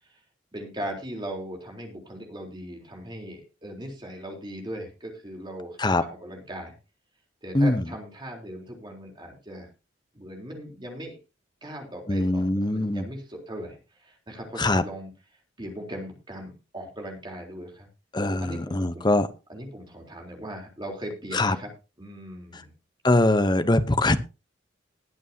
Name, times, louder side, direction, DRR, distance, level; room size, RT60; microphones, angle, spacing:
voice 1, 0.5-6.7 7.4-9.7 10.1-11.2 11.6-15.1 15.6-17.9 18.4-19.1 19.5-21.7 22.0-22.7, equal, 25° right, 1 dB, 3.8 m, -39 dB
voice 2, 7.5-7.9 12.1-13.0 14.6-14.8 18.1-19.3 21.3-21.6 22.5-22.6 23.0-24.2, left 2 dB, 25° left, 10 dB, 0.9 m, -22 dB
21.0 x 8.2 x 2.9 m, 0.30 s
head